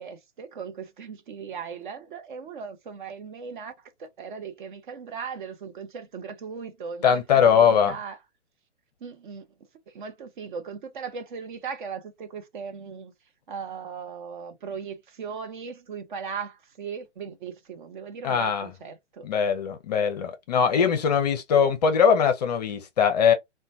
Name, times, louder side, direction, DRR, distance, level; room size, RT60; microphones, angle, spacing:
voice 1, 0.0-3.7 4.0-8.2 9.0-9.4 9.9-13.1 13.5-19.3 20.7-20.9, right 6 dB, 45° right, 0.6 m, -38 dB
voice 2, 7.0-8.0 18.2-18.7 19.2-23.3, left 7 dB, 35° left, 0.5 m, -21 dB
3.0 x 2.2 x 2.5 m
figure-of-eight pair, 130°, 36 cm